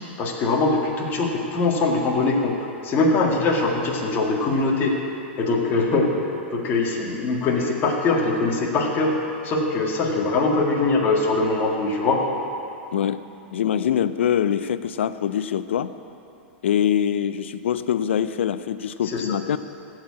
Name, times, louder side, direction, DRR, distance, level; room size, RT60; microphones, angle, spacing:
voice 1, 0.2-2.5 2.8-4.9 5.4-6.1 6.5-9.2 9.4-12.2 19.1-19.3, left 3 dB, 35° left, -1 dB, 1.9 m, -22 dB
voice 2, 12.9-13.2 13.5-15.9 16.6-19.6, left 9 dB, 80° left, 13 dB, 0.5 m, -23 dB
14.0 x 4.8 x 8.5 m, 2.7 s
hypercardioid pair, 120°, 6 cm